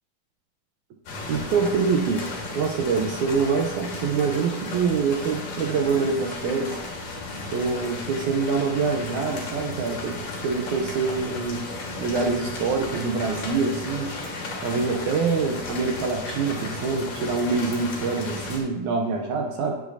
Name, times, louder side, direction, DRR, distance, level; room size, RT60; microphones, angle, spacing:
sound 1, 1.1-18.6, left 2 dB, 60° left, 2.9 m, -34 dB
voice 1, 1.3-6.8 7.5-10.2 10.4-14.1 14.6-19.7, right 5 dB, 75° right, 2 dB, 2.0 m, -25 dB
9.7 x 8.3 x 2.7 m, 0.99 s
omnidirectional pair, 3.7 m